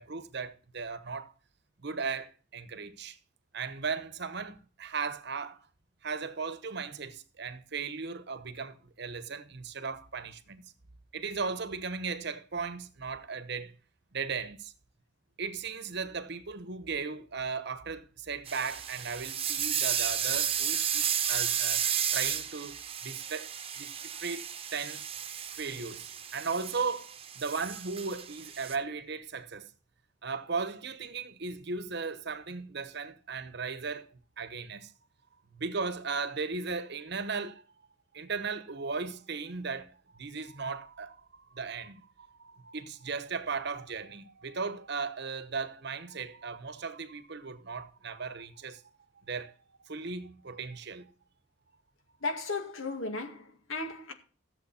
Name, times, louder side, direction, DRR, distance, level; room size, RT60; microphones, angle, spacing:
voice 1, 0.0-1.3 1.8-3.2 3.5-5.6 6.0-10.7 11.1-13.7 14.1-14.7 15.4-21.8 22.1-23.5 23.8-25.0 25.6-29.7 30.2-34.1 34.4-34.9 35.5-37.6 38.1-48.8 49.3-49.5 49.8-51.1, right 4 dB, 55° right, 1.0 m, -37 dB
sound 1, 18.5-28.8, right 9 dB, 30° right, 1.0 m, -33 dB
voice 2, 52.2-54.1, left 3 dB, 80° left, 2.1 m, -35 dB
14.5 x 7.6 x 4.2 m
head